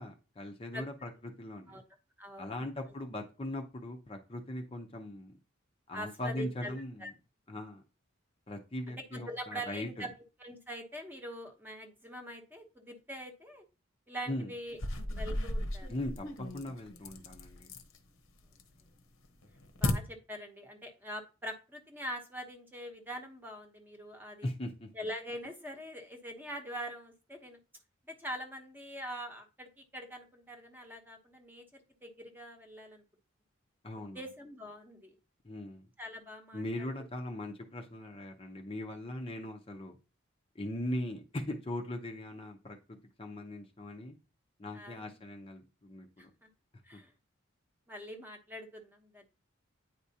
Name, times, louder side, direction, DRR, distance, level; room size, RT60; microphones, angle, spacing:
voice 1, 0.0-1.8 2.4-5.3 5.9-7.1 7.5-7.8 8.5-10.1 14.3-14.5 15.9-17.7 24.4-24.9 33.8-34.2 35.4-35.9 36.5-40.0 40.5-44.2 44.6-46.3, left 1 dB, 25° left, 3 dB, 0.6 m, -40 dB
voice 2, 2.2-2.5 5.9-6.8 7.0-7.1 9.1-10.1 10.4-13.6 14.1-14.8 15.2-15.9 19.8-24.5 24.9-27.6 28.1-31.6 32.0-33.0 34.1-35.1 36.0-36.9 44.7-45.0 46.2-46.5 46.9-47.1 47.9-49.2, equal, 10° right, 3 dB, 0.9 m, -43 dB
sound 1, 14.7-18.0 18.4-18.9 19.2-19.9, left 1 dB, 90° left, 1.0 m, -35 dB
9.3 x 4.8 x 2.8 m, 0.33 s
head